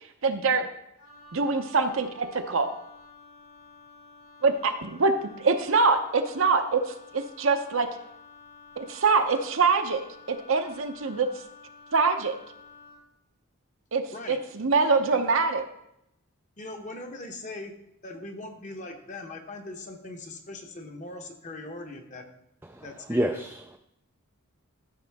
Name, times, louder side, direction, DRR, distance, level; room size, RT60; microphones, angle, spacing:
voice 1, 0.2-0.6 1.3-2.7 4.4-6.8 7.1-7.9 8.8-10.0 10.3-11.3 11.9-12.4 13.9-15.6, right 4 dB, 60° right, 7 dB, 0.8 m, -24 dB
Wind instrument woodwind instrument, 1.0-13.1, left 4 dB, 80° left, 3.8 m, -51 dB
voice 2, 16.6-17.7 18.0-22.3 22.8-23.4, left 2 dB, 35° left, 4 dB, 1.0 m, -40 dB
voice 3, 22.7-23.8, right 1 dB, 10° right, 3 dB, 0.3 m, -29 dB
13.5 x 6.3 x 3.5 m, 0.80 s
head